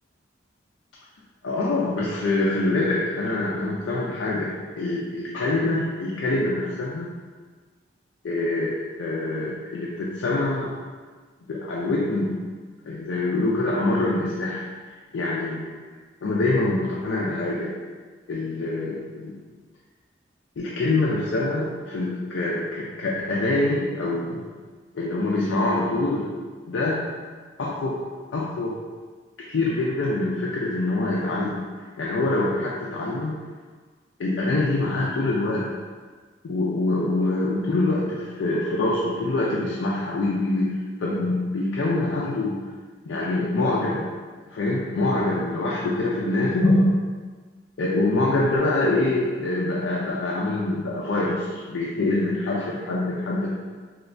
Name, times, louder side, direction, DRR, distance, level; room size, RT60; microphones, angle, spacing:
voice 1, 1.4-7.1 8.2-10.7 11.5-12.4 12.9-14.7 15.1-15.6 16.2-17.7 18.3-19.4 20.6-24.5 24.9-26.3 26.7-27.0 27.6-28.0 28.3-28.8 29.4-33.4 34.2-35.7 36.4-42.6 43.0-44.1 44.5-46.9 47.8-53.5, left 2 dB, 90° left, -5 dB, 0.4 m, -25 dB
3.2 x 2.7 x 2.5 m, 1.4 s
head